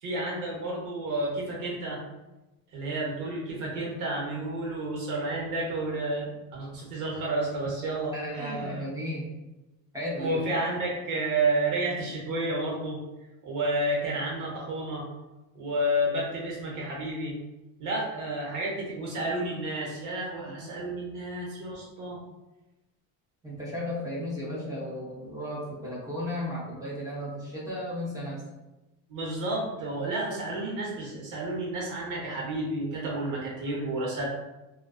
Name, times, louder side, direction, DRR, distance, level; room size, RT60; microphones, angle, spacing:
voice 1, 0.0-2.0 2.7-8.8 10.2-13.0 13.4-15.1 15.5-17.4 17.8-22.2 29.1-34.3, right 1 dB, 55° right, -3 dB, 1.0 m, -31 dB
voice 2, 8.1-9.3 9.9-10.4 20.5-20.6 23.4-28.4, left 1 dB, 10° right, -7 dB, 0.6 m, -34 dB
2.4 x 2.3 x 2.3 m, 1.0 s
cardioid pair, 145°, 37 cm